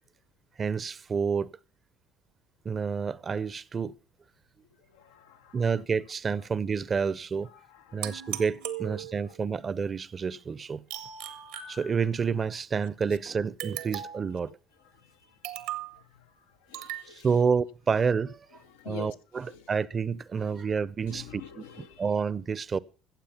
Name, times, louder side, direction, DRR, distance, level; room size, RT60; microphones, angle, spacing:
voice 1, 0.6-1.5 2.6-3.9 5.5-7.5 7.9-10.8 11.7-14.5 17.2-18.3 18.9-21.4 22.0-22.8, right 5 dB, 35° right, 0.5 m, -29 dB
voice 2, 4.7-5.8 6.3-6.5 7.4-8.5 8.8-9.6 11.1-11.3 13.8-14.0 14.3-17.4 17.9-18.0 18.5-19.8 20.4-22.2, left 8 dB, 90° left, 0.6 m, -50 dB
sound 1, 8.0-9.4 10.9-12.3 13.6-14.4 15.4-16.0 16.7-17.1, right 11 dB, 80° right, 1.1 m, -38 dB
15.0 x 7.4 x 5.7 m
hypercardioid pair, 70°, 0 cm